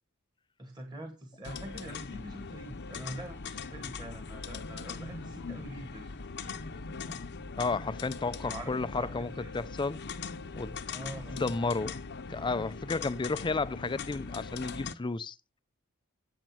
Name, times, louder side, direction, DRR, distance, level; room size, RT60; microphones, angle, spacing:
voice 1, 0.6-6.7 8.3-9.5 10.9-11.4, right 1 dB, 20° right, 1.6 m, -45 dB
sound 1, 1.4-14.9, left 4 dB, 55° left, 0.8 m, -41 dB
voice 2, 7.6-10.0 10.5-10.8 11.3-12.0 12.3-15.3, left 3 dB, 20° left, 0.5 m, -32 dB
9.0 x 7.2 x 5.9 m
head